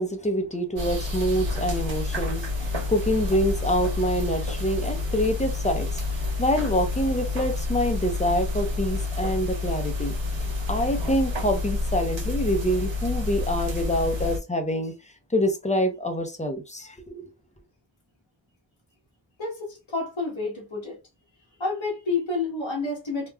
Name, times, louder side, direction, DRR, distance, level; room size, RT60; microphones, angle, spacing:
voice 1, 0.0-6.0 6.4-14.9 15.3-17.3, equal, 15° left, 0.8 m, -26 dB
sound 1, 0.8-14.4, left 3 dB, 80° right, 1.1 m, -29 dB
voice 2, 19.4-21.0 21.6-23.3, left 3 dB, 80° left, 1.4 m, -29 dB
3.4 x 2.4 x 2.2 m
wide cardioid pair, 40°, 46 cm